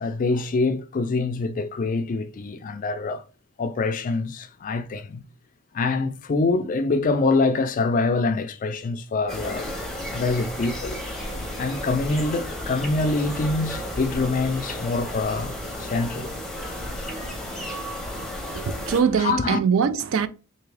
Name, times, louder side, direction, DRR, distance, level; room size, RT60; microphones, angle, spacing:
voice 1, 0.0-3.2 3.6-5.2 5.7-9.7 10.1-11.0 11.6-15.5 15.8-16.3 19.2-19.6, left 3 dB, 35° left, 0.3 m, -25 dB
sound 1, 9.3-19.0, left 1 dB, ahead, 0.7 m, -33 dB
voice 2, 18.5-20.3, right 6 dB, 60° right, 0.4 m, -22 dB
3.4 x 2.7 x 3.3 m
head